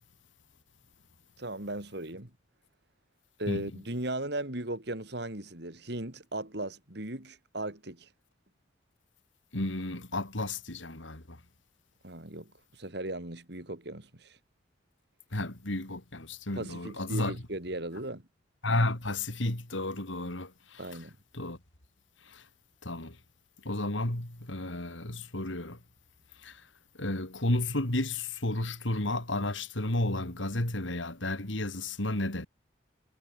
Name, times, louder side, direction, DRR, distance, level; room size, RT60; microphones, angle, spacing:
voice 1, 1.4-2.3 3.4-8.1 12.0-14.4 16.5-18.2 20.8-21.2, right 1 dB, 60° right, 3.5 m, -37 dB
voice 2, 9.5-11.4 15.3-17.3 18.6-20.8 21.3-21.6 22.3-22.4 22.8-23.2 23.6-25.8 26.4-26.6 27.0-32.5, left 1 dB, 80° left, 3.4 m, -32 dB
head